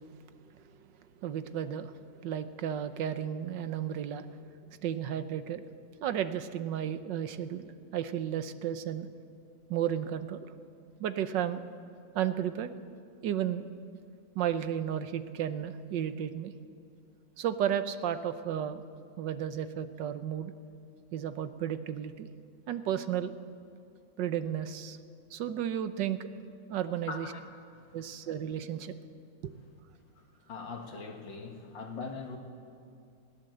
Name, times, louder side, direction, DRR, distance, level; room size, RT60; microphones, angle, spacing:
voice 1, 1.2-1.9 2.2-4.3 4.8-5.6 6.0-9.1 9.7-10.4 11.0-11.6 12.1-12.7 13.2-13.6 14.3-16.5 17.4-18.8 19.2-20.5 21.1-22.3 22.7-23.4 24.2-25.0 25.3-26.3 26.7-27.3 27.9-28.9 29.4-29.5, right 10 dB, 75° right, 11 dB, 1.5 m, -33 dB
voice 2, 27.1-27.5 30.2-30.3 30.5-32.4, left 4 dB, 90° left, 4 dB, 2.6 m, -41 dB
21.0 x 16.0 x 7.9 m, 2.5 s
omnidirectional pair, 2.0 m